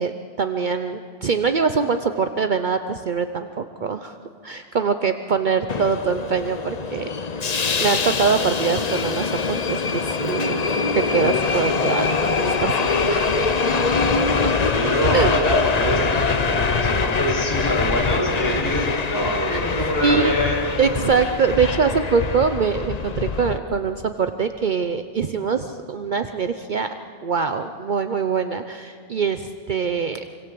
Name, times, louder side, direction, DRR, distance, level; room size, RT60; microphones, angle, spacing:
voice 1, 0.0-4.1 4.4-7.1 7.4-10.6 10.9-13.3 15.1-15.3 19.5-19.6 20.0-20.3 20.8-26.9 27.2-30.2, right 5 dB, 50° right, 8 dB, 0.9 m, -23 dB
Subway metro underground, 5.7-23.6, left 4 dB, 45° left, 1.0 m, -23 dB
voice 2, 13.6-20.6, equal, 20° left, -4 dB, 7.3 m, -25 dB
25.5 x 25.0 x 7.7 m, 2.2 s
omnidirectional pair, 1.0 m